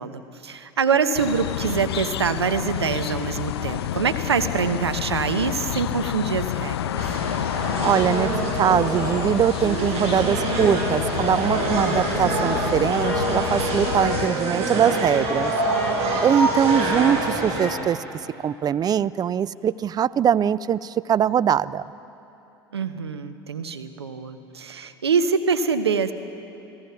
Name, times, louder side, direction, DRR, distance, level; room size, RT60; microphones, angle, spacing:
voice 1, 0.0-7.0 22.7-26.1, right 5 dB, 90° right, 9 dB, 1.1 m, -25 dB
sound 1, 1.1-14.3, left 12 dB, 75° left, 0.4 m, -29 dB
sound 2, 7.0-17.7, right 2 dB, 55° right, 5.9 m, -26 dB
voice 2, 7.8-8.3 8.6-15.5 16.2-18.0 18.4-21.9, right 9 dB, 30° right, 18 dB, 0.5 m, -22 dB
sound 3, 13.0-17.9, left 7 dB, 15° left, 1.8 m, -34 dB
29.5 x 18.5 x 5.8 m, 2.9 s
hypercardioid pair, 75°, 13 cm